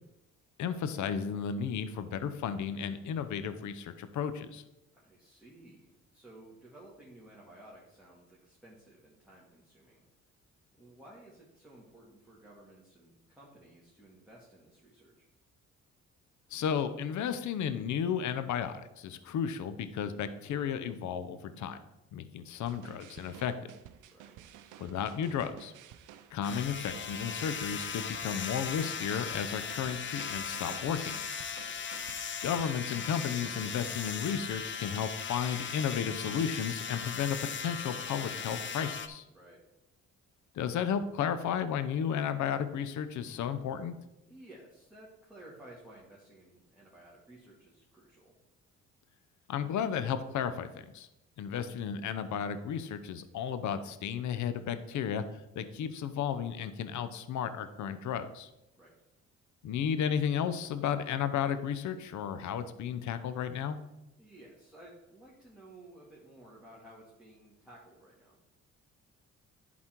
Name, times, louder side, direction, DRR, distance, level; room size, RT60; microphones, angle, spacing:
voice 1, 0.6-4.6 16.5-21.8 22.1-23.5 24.8-25.7 26.3-31.2 32.4-39.2 40.5-43.9 49.5-51.1 51.4-55.2 55.6-58.5 59.6-63.8, left 8 dB, 75° left, 11 dB, 0.8 m, -33 dB
voice 2, 4.9-10.1 10.8-15.3 24.0-24.6 31.5-31.9 39.3-39.6 44.3-48.3 58.7-58.9 64.2-68.4, right 1 dB, 5° right, -6 dB, 2.3 m, -55 dB
sound 1, 22.7-33.6, right 10 dB, 85° right, 0.6 m, -53 dB
sound 2, 26.4-39.1, left 7 dB, 40° left, 0.7 m, -38 dB
11.0 x 4.2 x 4.6 m, 0.91 s
cardioid pair, 90°, 30 cm